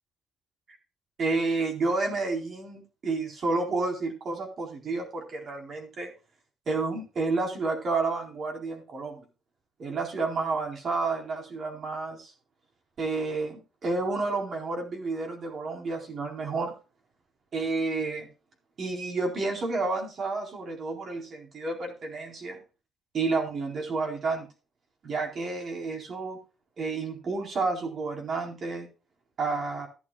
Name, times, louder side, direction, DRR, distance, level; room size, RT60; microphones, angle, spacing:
voice 1, 1.2-6.1 6.7-9.2 9.8-12.3 13.0-16.7 17.5-18.3 18.8-22.6 23.1-24.5 25.0-26.4 26.8-28.9 29.4-29.9, right 3 dB, 55° right, 2 dB, 4.3 m, -30 dB
14.0 x 11.0 x 2.4 m, 0.33 s
cardioid pair, 90°, 0 cm